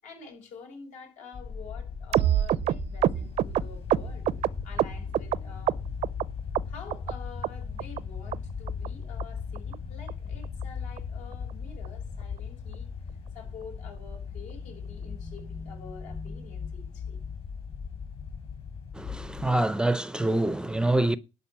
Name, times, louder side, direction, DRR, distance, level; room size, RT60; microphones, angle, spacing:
voice 1, 0.0-4.3 4.6-5.8 6.7-17.2, left 5 dB, 75° left, 6.9 m, -48 dB
sound 1, 1.3-19.5, left 6 dB, 50° left, 4.0 m, -38 dB
sound 2, 2.1-5.4 5.7-6.3 6.6-7.1 7.4-7.5 7.8-8.0 8.3-8.4 8.7-8.9 9.2-9.3 9.6-9.8 10.1-10.2 10.4-10.6 11.0-11.1 11.3-11.5 11.9-12.0, right 12 dB, 55° right, 0.5 m, -26 dB
voice 2, 18.9-21.2, right 2 dB, 5° right, 0.5 m, -25 dB
12.0 x 5.3 x 8.2 m
cardioid pair, 135°, 12 cm